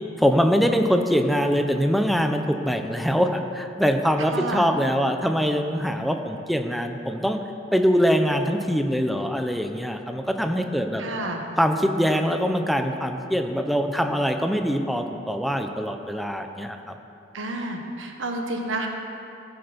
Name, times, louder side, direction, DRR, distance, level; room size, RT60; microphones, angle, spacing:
voice 1, 0.2-7.4 7.7-11.0 11.6-16.9, equal, ahead, 5 dB, 0.7 m, -23 dB
voice 2, 4.3-4.7 11.0-11.4 17.3-18.9, right 2 dB, 75° right, 2 dB, 1.5 m, -30 dB
16.0 x 7.8 x 5.3 m, 2.7 s
head